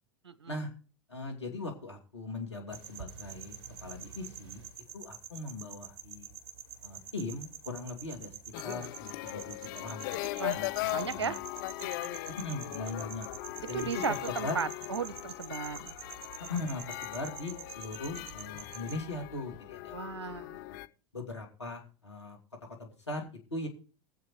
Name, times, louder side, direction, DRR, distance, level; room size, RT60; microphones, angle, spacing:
voice 1, 0.2-0.6 10.4-10.6 10.9-11.4 11.8-12.2 13.7-15.9 19.9-20.6, right 6 dB, 75° right, 17 dB, 0.8 m, -36 dB
voice 2, 1.1-3.6 3.8-4.6 4.9-6.3 6.8-8.3 8.6-11.4 12.3-13.3 13.7-14.6 16.5-20.0 20.5-20.6 21.1-22.4 22.8-23.7, left 2 dB, 85° left, -1 dB, 2.7 m, -39 dB
sound 1, 2.7-19.1, right 7 dB, 50° right, 1.0 m, -47 dB
sound 2, 8.5-20.9, left 19 dB, 45° left, 0.5 m, -39 dB
21.5 x 7.7 x 3.2 m, 0.37 s
figure-of-eight pair, 85°, 14 cm